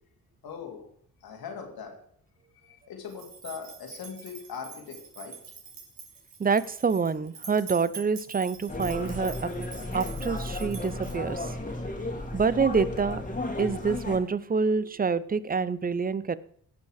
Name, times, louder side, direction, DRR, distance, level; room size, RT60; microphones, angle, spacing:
voice 1, 0.4-0.9 1.2-2.0 2.5-5.6, left 6 dB, 75° left, 2 dB, 2.5 m, -41 dB
sound 1, 3.1-11.4, right 6 dB, 65° right, 2.7 m, -45 dB
voice 2, 6.4-9.5 9.9-11.5 12.3-13.2 13.6-16.4, right 5 dB, 25° right, 17 dB, 0.6 m, -27 dB
sound 2, 8.7-14.2, left 2 dB, 20° left, 2.2 m, -34 dB
16.5 x 5.6 x 4.9 m, 0.62 s
cardioid pair, 65°, 36 cm